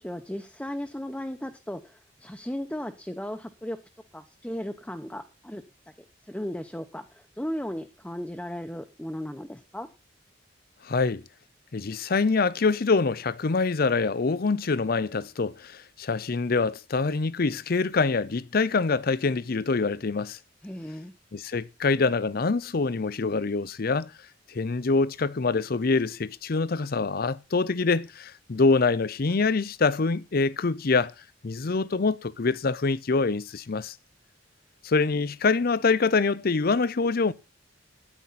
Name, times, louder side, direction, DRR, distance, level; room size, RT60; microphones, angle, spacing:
voice 1, 0.0-3.8 4.1-5.6 6.2-9.9 20.6-21.1, equal, 5° left, 0.9 m, -36 dB
voice 2, 10.8-11.2 11.7-20.4 21.3-24.1 24.5-31.1 31.4-33.9 34.8-37.3, left 4 dB, 50° left, 0.6 m, -25 dB
13.5 x 10.0 x 4.2 m
head